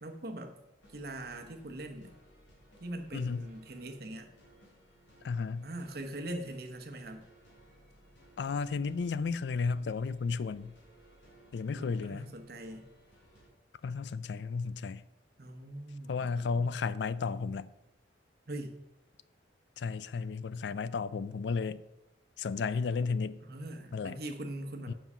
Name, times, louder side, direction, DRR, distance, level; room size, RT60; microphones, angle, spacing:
voice 1, 0.0-0.6 0.9-2.1 2.8-4.3 5.6-7.2 11.7-12.9 15.4-16.7 18.5-18.8 23.4-24.9, right 1 dB, 55° right, 0.9 m, -42 dB
sound 1, 0.8-13.5, right 1 dB, 90° left, 3.5 m, -61 dB
voice 2, 3.1-3.5 5.2-5.7 8.4-10.7 11.5-12.3 13.8-15.0 16.1-17.7 19.8-21.8 22.4-23.4 23.9-24.2 24.9-25.0, left 5 dB, 70° left, 0.4 m, -33 dB
7.2 x 5.7 x 5.4 m
head